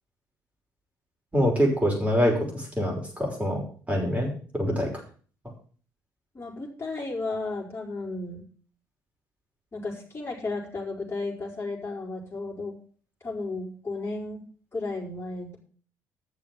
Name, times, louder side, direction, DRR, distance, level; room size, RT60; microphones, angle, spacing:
voice 1, 1.3-4.9, equal, 15° right, 0 dB, 5.6 m, -25 dB
voice 2, 6.3-8.4 9.7-12.8 13.2-14.4 14.7-15.6, left 3 dB, 25° left, -4 dB, 5.2 m, -33 dB
10.0 x 6.7 x 7.6 m, 0.42 s
figure-of-eight pair, 45°, 10 cm